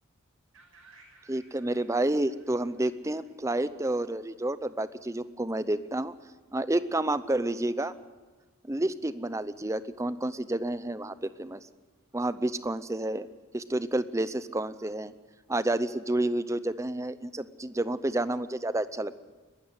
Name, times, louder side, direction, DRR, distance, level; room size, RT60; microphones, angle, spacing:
sound 1, 0.5-4.4, right 3 dB, 65° right, 6.3 m, -59 dB
voice 1, 1.3-6.1 6.5-7.9 8.7-11.6 12.1-13.3 13.5-15.1 15.5-19.2, right 1 dB, 15° right, 15 dB, 0.6 m, -30 dB
21.5 x 13.0 x 9.8 m, 1.3 s
head